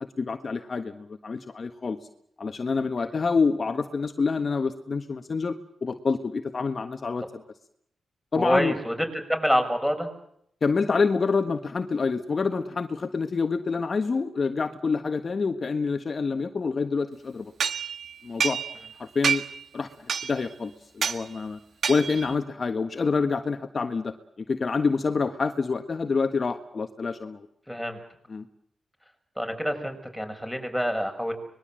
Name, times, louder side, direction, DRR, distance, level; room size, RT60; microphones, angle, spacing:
voice 1, 0.2-2.0 2.4-5.5 5.8-7.2 8.3-8.7 10.6-17.5 18.2-18.6 19.0-19.4 19.7-21.6 21.9-24.1 24.5-27.5 28.3-28.4, left 4 dB, 45° left, 7 dB, 1.5 m, -27 dB
voice 2, 8.3-8.9 9.3-10.1 27.7-28.0 29.4-31.3, equal, ahead, 6 dB, 6.1 m, -26 dB
sound 1, 17.6-18.9 19.2-19.6 20.1-20.5 21.0-21.2 21.8-22.3, right 7 dB, 65° right, 1.6 m, -28 dB
24.5 x 21.5 x 7.7 m, 0.70 s
cardioid pair, 80°, 0 cm